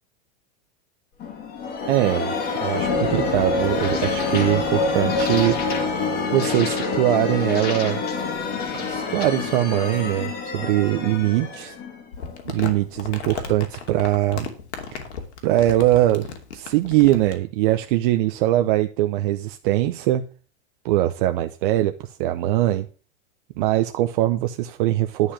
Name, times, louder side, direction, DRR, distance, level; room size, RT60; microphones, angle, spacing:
sound 1, 1.2-12.7, left 4 dB, 30° left, 2.3 m, -26 dB
voice 1, 1.9-2.3 2.6-5.6 6.3-8.0 8.7-11.8 12.4-14.5 14.9-15.0 15.4-20.2 20.8-21.9 22.2-22.9 23.6-25.3, right 15 dB, 50° right, 7 dB, 0.9 m, -22 dB
Crumpling crinkling, 12.1-17.4, left 6 dB, 80° left, 2.8 m, -35 dB
11.0 x 5.1 x 7.2 m, 0.39 s
supercardioid pair, 145°, 34 cm